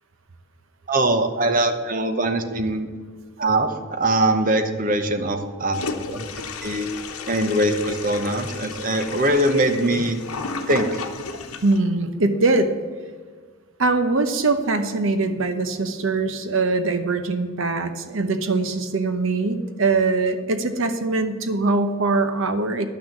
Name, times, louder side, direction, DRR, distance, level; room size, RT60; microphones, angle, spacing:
voice 1, 0.9-2.9 3.4-6.2 6.6-6.9 7.3-10.2 10.7-11.0, right 1 dB, 40° right, 7 dB, 0.9 m, -22 dB
Toilet flush, 5.7-11.8, left 4 dB, 80° left, 1.0 m, -33 dB
voice 2, 11.6-12.7 13.8-22.9, right 3 dB, 65° right, 8 dB, 0.8 m, -22 dB
10.5 x 6.2 x 7.3 m, 1.5 s
head